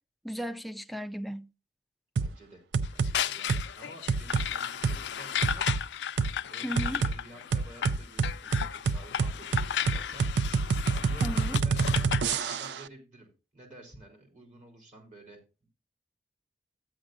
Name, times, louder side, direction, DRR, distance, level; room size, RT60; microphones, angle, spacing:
voice 1, 0.2-1.5 6.6-7.0 11.2-11.6, equal, ahead, 0.4 m, -35 dB
voice 2, 2.2-2.6 2.9-5.6 6.5-10.3 10.9-12.2 12.5-15.7, right 1 dB, 45° right, 3.5 m, -51 dB
sound 1, 2.2-2.3 2.7-3.1 3.5-3.7 4.1-4.5 4.8-5.0 5.4-5.8 6.2-6.3 6.8-7.2 7.5-12.8, right 4 dB, 80° right, 0.4 m, -27 dB
sound 2, 2.8-12.6, left 9 dB, 85° left, 0.4 m, -34 dB
13.5 x 8.8 x 2.5 m
head